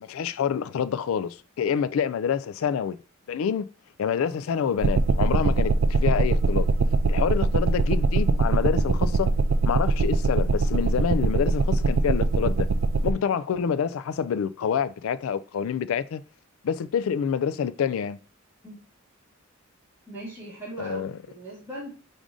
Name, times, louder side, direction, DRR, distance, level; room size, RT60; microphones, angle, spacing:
voice 1, 0.0-3.0 3.3-3.7 4.0-6.7 7.1-9.3 9.7-12.7 13.0-16.2 16.6-18.2 20.8-21.1, left 7 dB, 75° left, 0.3 m, -27 dB
sound 1, 4.8-13.1, right 3 dB, 65° right, 0.4 m, -22 dB
voice 2, 20.1-21.9, right 1 dB, 10° right, 1.8 m, -39 dB
4.8 x 2.6 x 3.6 m
head